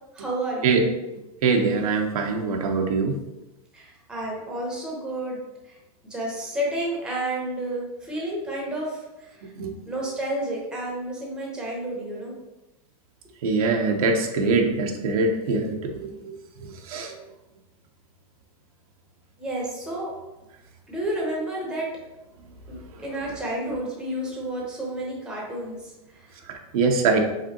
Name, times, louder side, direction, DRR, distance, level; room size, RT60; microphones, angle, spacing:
voice 1, 0.1-0.8 3.7-5.4 5.6-5.8 6.0-9.5 9.9-12.3 19.4-20.1 20.9-21.9 22.7-26.3, right 1 dB, 5° right, -3 dB, 0.8 m, -31 dB
voice 2, 1.4-3.2 9.6-9.7 13.4-16.3 16.7-17.1 26.5-27.2, right 4 dB, 80° right, 3 dB, 0.8 m, -23 dB
4.9 x 3.6 x 2.8 m, 0.98 s
supercardioid pair, 165°, 19 cm